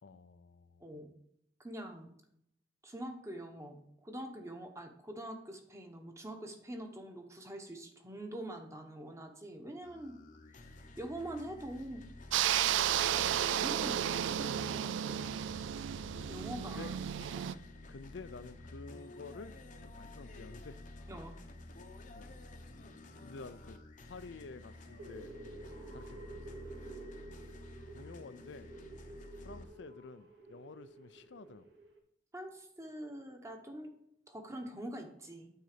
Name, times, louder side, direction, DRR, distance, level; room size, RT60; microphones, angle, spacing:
voice 1, 0.0-0.9 13.4-13.6 16.6-17.0 17.9-21.1 22.1-22.4 23.2-23.8 24.1-25.4 25.9-26.4 27.9-28.7 29.4-31.7, left 4 dB, 70° left, 0.5 m, -50 dB
voice 2, 1.6-2.1 2.8-10.2 11.0-12.0 13.5-15.3 16.3-16.9 17.4-17.6 21.1-21.3 32.3-33.9 34.3-35.5, right 1 dB, 15° right, 1.0 m, -44 dB
sound 1, 9.8-29.6, left 2 dB, 45° left, 0.8 m, -51 dB
sound 2, 12.3-17.5, right 10 dB, 85° right, 0.3 m, -33 dB
sound 3, 24.7-32.0, right 2 dB, 65° right, 1.5 m, -51 dB
9.2 x 4.0 x 6.6 m
head